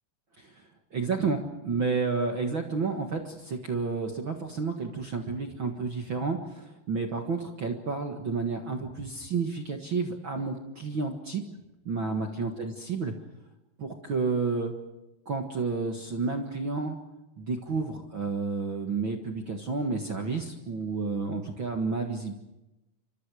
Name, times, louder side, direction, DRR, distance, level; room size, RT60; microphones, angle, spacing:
voice 1, 0.9-11.4 11.8-13.1 13.8-14.7 15.2-17.0 17.4-22.3, right 4 dB, 50° right, 3 dB, 1.6 m, -31 dB
29.0 x 25.0 x 4.9 m, 0.96 s
omnidirectional pair, 4.5 m